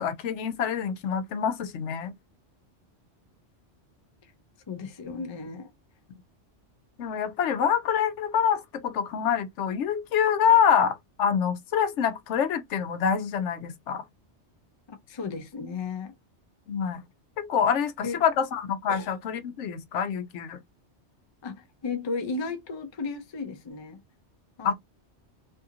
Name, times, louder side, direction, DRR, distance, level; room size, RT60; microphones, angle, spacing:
voice 1, 0.0-2.1 7.0-14.0 16.7-17.0 17.4-20.6 24.6-24.7, left 7 dB, 85° left, 0.9 m, -26 dB
voice 2, 4.7-5.7 14.9-16.1 18.0-18.2 18.9-19.2 21.4-24.0 24.6-24.7, left 4 dB, 40° left, 0.4 m, -34 dB
2.7 x 2.4 x 2.7 m
omnidirectional pair, 1.2 m